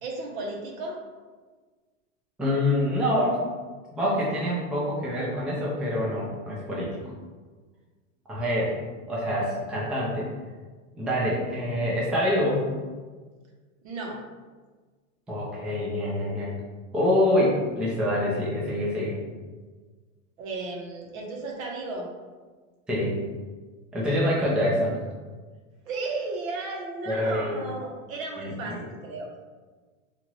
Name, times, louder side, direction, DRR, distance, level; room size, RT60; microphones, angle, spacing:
voice 1, 0.0-1.0 13.8-14.2 20.4-22.1 25.8-29.3, right 3 dB, 85° right, -1 dB, 0.9 m, -34 dB
voice 2, 2.4-3.4 3.9-7.0 8.3-8.8 9.1-10.3 11.0-12.7 15.3-16.5 16.9-19.2 22.9-23.2 23.9-25.0 27.1-27.7 28.4-28.8, left 1 dB, 5° right, -6 dB, 0.3 m, -26 dB
2.8 x 2.5 x 3.0 m, 1.4 s
supercardioid pair, 125°, 40 cm